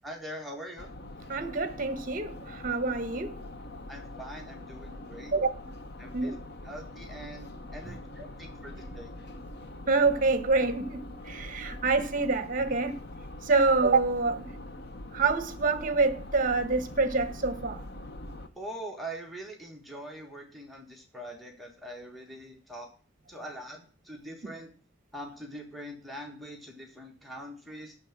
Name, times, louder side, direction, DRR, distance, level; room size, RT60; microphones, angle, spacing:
voice 1, 0.0-0.9 3.9-5.3 6.0-6.4 6.6-9.1 18.5-22.9 23.3-24.8 25.1-28.0, right 1 dB, ahead, 1.5 m, -43 dB
sound 1, 0.8-18.5, left 1 dB, 55° left, 0.9 m, -43 dB
voice 2, 1.3-2.3 2.6-3.3 5.3-5.5 6.1-6.3 9.9-11.0 11.3-13.0 13.4-14.5 15.1-17.8, right 3 dB, 45° right, 1.0 m, -26 dB
11.5 x 4.0 x 7.4 m
head